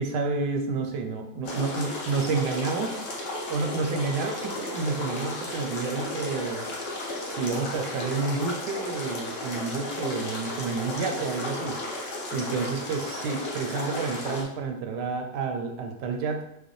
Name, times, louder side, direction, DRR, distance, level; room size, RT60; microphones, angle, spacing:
voice 1, 0.0-3.1 3.5-6.6 7.4-11.8 12.3-16.4, right 4 dB, 80° right, 4 dB, 1.2 m, -30 dB
sound 1, 1.4-14.4, left 1 dB, 55° left, 1.0 m, -34 dB
5.0 x 2.2 x 3.1 m, 0.78 s
omnidirectional pair, 1.8 m